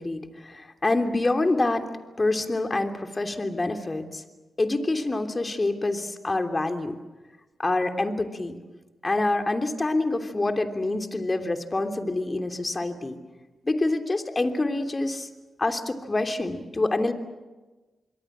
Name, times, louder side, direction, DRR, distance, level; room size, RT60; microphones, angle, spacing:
voice 1, 0.0-1.9 2.2-4.2 4.6-7.0 7.6-8.6 9.0-13.2 13.6-15.3 15.6-17.1, left 2 dB, 35° left, 6 dB, 3.1 m, -26 dB
27.0 x 22.0 x 7.5 m, 1.2 s
supercardioid pair, 45°, 0 cm